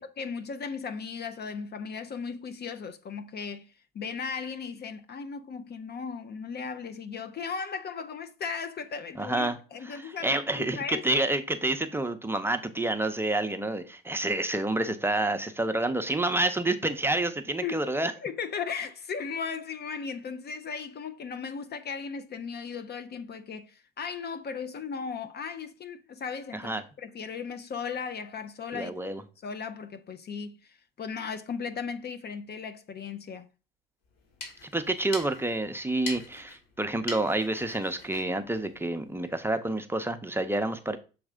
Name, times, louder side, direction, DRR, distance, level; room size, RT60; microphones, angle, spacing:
voice 1, 0.0-11.3 17.6-26.7 27.0-28.9 29.4-33.5, left 5 dB, 35° left, 0.7 m, -37 dB
voice 2, 9.2-9.6 10.2-18.1 26.5-26.8 28.7-29.2 34.7-41.0, right 2 dB, 10° right, 0.8 m, -28 dB
sound 1, 34.1-39.4, left 4 dB, 55° left, 3.1 m, -43 dB
7.2 x 3.2 x 5.0 m
hypercardioid pair, 70°, 29 cm